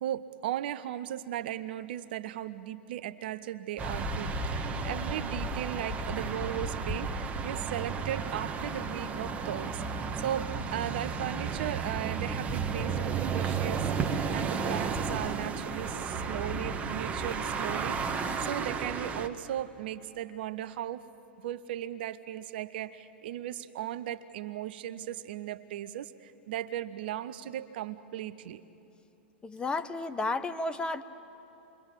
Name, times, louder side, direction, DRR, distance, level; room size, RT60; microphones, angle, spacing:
voice 1, 0.0-9.8 10.1-21.1 21.4-28.6, right 12 dB, 60° right, 12 dB, 0.8 m, -37 dB
sound 1, 3.8-19.3, right 5 dB, 20° right, 1.3 m, -33 dB
voice 2, 29.4-31.0, left 3 dB, 15° left, 10 dB, 0.9 m, -32 dB
28.0 x 23.0 x 7.6 m, 2.9 s
figure-of-eight pair, 100°, 6 cm